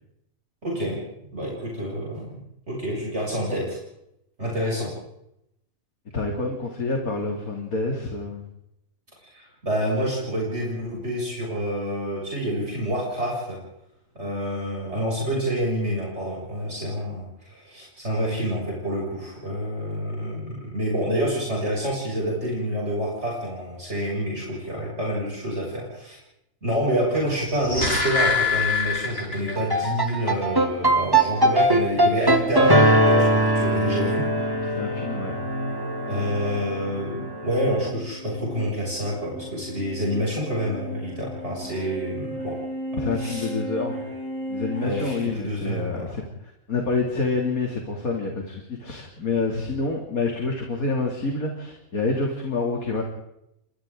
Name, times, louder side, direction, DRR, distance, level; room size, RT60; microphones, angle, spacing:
voice 1, 0.6-1.0 1.3-2.4 2.7-3.8 4.4-4.9 9.2-13.6 14.2-26.2 26.6-34.3 36.1-42.5 42.9-43.5 44.8-46.1, equal, 50° right, -4 dB, 7.3 m, -28 dB
voice 2, 6.1-8.4 34.7-35.4 43.0-44.0 44.5-53.0, left 3 dB, 90° left, 1 dB, 3.3 m, -27 dB
sound 1, 27.4-29.8 30.1-30.2, left 4 dB, 50° left, 8.4 m, -24 dB
sound 2, 29.5-37.8, right 1 dB, 15° right, 2.1 m, -21 dB
sound 3, 32.2-45.2, equal, 85° right, 7.9 m, -36 dB
30.0 x 25.5 x 3.8 m, 0.81 s
omnidirectional pair, 1.5 m